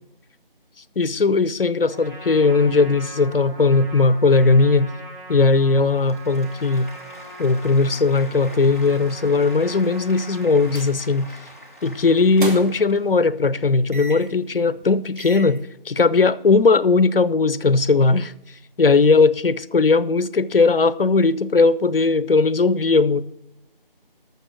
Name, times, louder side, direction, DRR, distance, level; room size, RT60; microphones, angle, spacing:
voice 1, 1.0-4.9 5.3-6.9 7.4-11.3 11.8-15.6 15.9-18.3 18.8-23.2, left 4 dB, 75° left, 0.6 m, -18 dB
Trumpet, 1.9-10.9, right 1 dB, 15° right, 4.8 m, -41 dB
Applause, 5.9-13.3, left 1 dB, 15° left, 0.9 m, -44 dB
sound 1, 10.6-11.0 11.3-11.5 12.2-12.9 13.9-14.4 14.8-14.9 15.2-15.6, right 2 dB, 60° right, 2.6 m, -34 dB
12.0 x 7.1 x 6.1 m
figure-of-eight pair, 165°, 29 cm